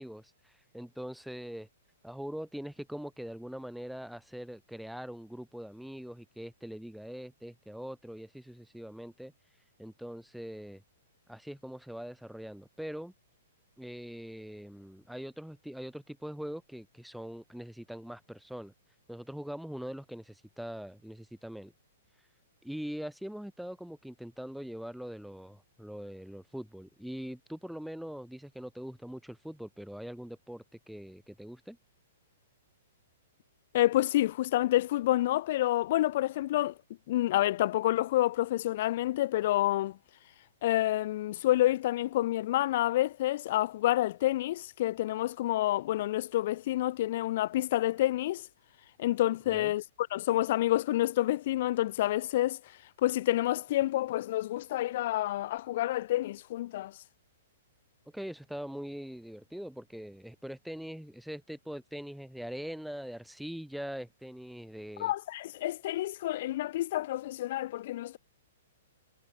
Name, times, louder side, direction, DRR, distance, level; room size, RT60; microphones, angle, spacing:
voice 1, 0.0-1.7 2.0-9.3 9.8-10.8 11.3-13.1 13.8-18.7 19.1-21.7 22.6-31.8 49.5-49.7 58.1-65.1, equal, ahead, 2.0 m, -42 dB
voice 2, 33.7-36.7 37.1-40.0 40.6-48.5 49.0-49.8 50.1-52.6 53.0-57.0 65.0-68.2, left 15 dB, 45° left, 1.1 m, -28 dB
hypercardioid pair, 165°, 0 cm